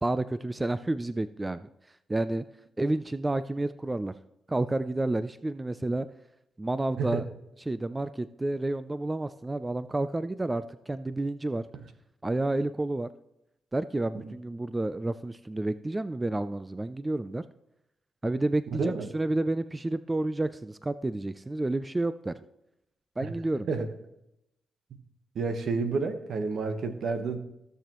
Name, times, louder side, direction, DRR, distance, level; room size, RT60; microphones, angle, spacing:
voice 1, 0.0-1.7 2.1-2.4 2.8-4.1 4.5-6.1 6.6-7.2 7.7-11.6 12.2-13.1 13.7-17.4 18.2-22.3 23.2-23.7, right 2 dB, 20° right, 14 dB, 0.4 m, -30 dB
voice 2, 25.3-27.4, right 4 dB, 70° right, 8 dB, 1.1 m, -30 dB
15.5 x 6.8 x 3.0 m, 0.85 s
cardioid pair, 75°, 0 cm